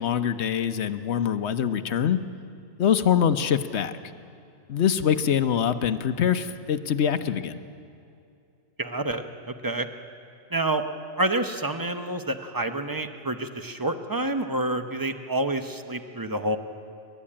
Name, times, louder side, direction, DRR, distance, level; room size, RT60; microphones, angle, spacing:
voice 1, 0.0-2.2 2.8-3.9 4.7-7.6, left 8 dB, 60° left, 11 dB, 1.0 m, -24 dB
voice 2, 8.8-9.9 10.5-10.8 11.2-16.6, right 2 dB, 20° right, 7 dB, 0.8 m, -28 dB
29.0 x 12.5 x 8.7 m, 2.6 s
omnidirectional pair, 1.4 m